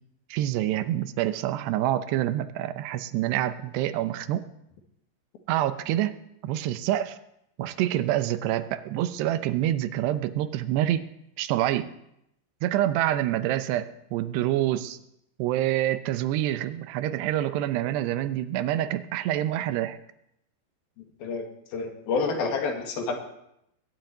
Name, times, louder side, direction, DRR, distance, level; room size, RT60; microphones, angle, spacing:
voice 1, 0.3-4.4 5.5-6.2 6.4-7.2 7.6-11.1 11.4-11.9 12.6-15.0 15.4-20.0, right 13 dB, 85° right, 12 dB, 3.0 m, -27 dB
voice 2, 21.2-23.2, left 4 dB, 65° left, 4 dB, 3.7 m, -29 dB
20.5 x 7.2 x 9.1 m, 0.79 s
omnidirectional pair, 4.7 m